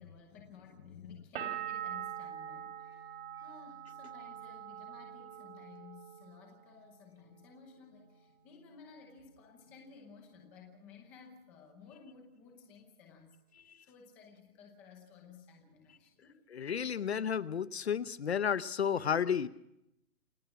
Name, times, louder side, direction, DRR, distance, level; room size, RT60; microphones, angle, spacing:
voice 1, 0.0-13.4 13.8-16.7 18.3-18.4 18.9-19.0, left 5 dB, 5° left, 2 dB, 0.8 m, -56 dB
sound 1, 1.4-7.0 7.3-8.0, right 10 dB, 40° right, 3.3 m, -44 dB
voice 2, 16.5-19.5, left 7 dB, 45° left, 16 dB, 0.9 m, -32 dB
28.5 x 18.0 x 5.9 m, 0.81 s
hypercardioid pair, 170°, 45 cm